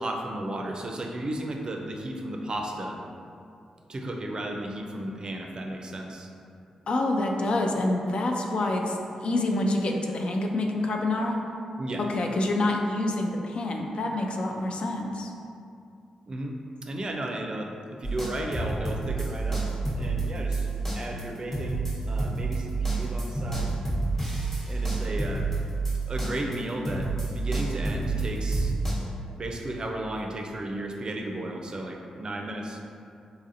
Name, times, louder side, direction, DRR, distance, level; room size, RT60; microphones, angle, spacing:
voice 1, 0.0-3.0 3.9-6.3 11.8-12.0 16.3-16.6 16.9-17.7 18.0-19.7 20.0-20.6 20.9-23.8 24.7-25.5 26.1-28.7 29.3-32.8, right 1 dB, 45° right, 2 dB, 0.4 m, -34 dB
voice 2, 6.9-11.4 12.0-15.3, left 2 dB, 60° left, 2 dB, 0.4 m, -27 dB
sound 1, 18.0-26.6 26.9-28.9, right 3 dB, 15° left, 0.9 m, -29 dB
4.0 x 2.6 x 2.5 m, 2.5 s
cardioid pair, 55°, 2 cm